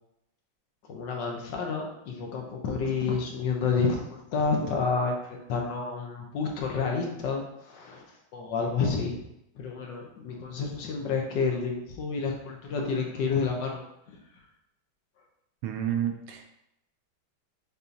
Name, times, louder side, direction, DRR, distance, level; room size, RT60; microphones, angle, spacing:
voice 1, 0.9-8.0 8.3-9.2 9.5-13.8 14.1-14.2, left 4 dB, 70° left, 1 dB, 1.3 m, -29 dB
voice 2, 15.6-16.4, right 10 dB, 80° right, 4 dB, 1.3 m, -30 dB
6.9 x 2.7 x 2.6 m, 0.82 s
omnidirectional pair, 2.2 m